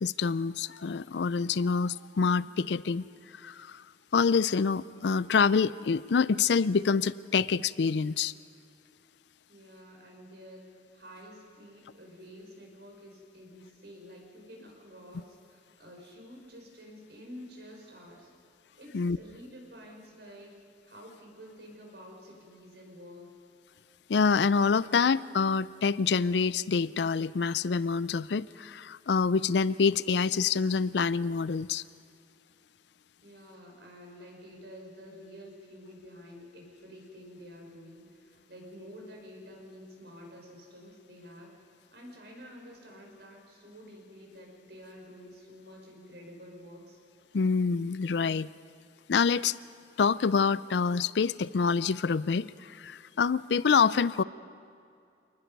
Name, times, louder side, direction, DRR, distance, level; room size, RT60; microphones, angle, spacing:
voice 1, 0.0-3.0 3.4-3.8 4.1-8.3 18.9-19.2 24.1-31.8 47.3-48.5 49.1-49.5 50.0-54.2, left 5 dB, 80° left, 18 dB, 0.4 m, -26 dB
voice 2, 9.5-10.6 10.9-18.3 18.8-20.5 20.8-23.3 33.2-41.5 41.9-47.0, equal, 70° right, 0 dB, 5.1 m, -49 dB
28.0 x 19.5 x 5.4 m, 2.4 s
head